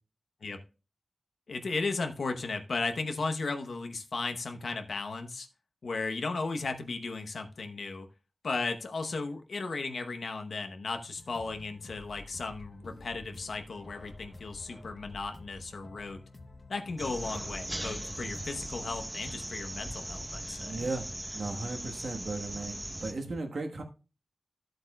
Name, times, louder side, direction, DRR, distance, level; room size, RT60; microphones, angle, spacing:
voice 1, 1.5-5.5 5.8-8.1 8.4-16.2 16.7-20.9, left 3 dB, 80° left, 6 dB, 0.8 m, -35 dB
sound 1, 11.2-19.1, left 2 dB, 45° left, 0.8 m, -50 dB
sound 2, 17.0-23.1, right 1 dB, 10° right, 0.8 m, -39 dB
voice 2, 20.6-23.8, right 3 dB, 70° right, 4 dB, 1.2 m, -36 dB
13.0 x 7.9 x 2.2 m, 0.32 s
wide cardioid pair, 95°, 0 cm